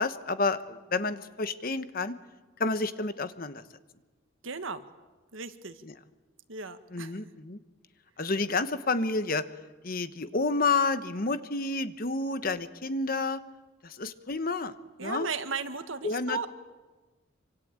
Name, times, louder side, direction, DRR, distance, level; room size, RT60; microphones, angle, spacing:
voice 1, 0.0-2.2 2.6-3.6 6.9-7.6 8.2-9.4 9.8-13.4 13.8-14.7 15.0-15.3 16.0-16.5, left 3 dB, 45° left, 11 dB, 1.2 m, -29 dB
voice 2, 4.4-4.8 5.3-5.8 6.5-7.3 15.0-16.5, right 4 dB, 85° right, 9 dB, 1.6 m, -36 dB
26.5 x 25.5 x 8.9 m, 1.3 s
head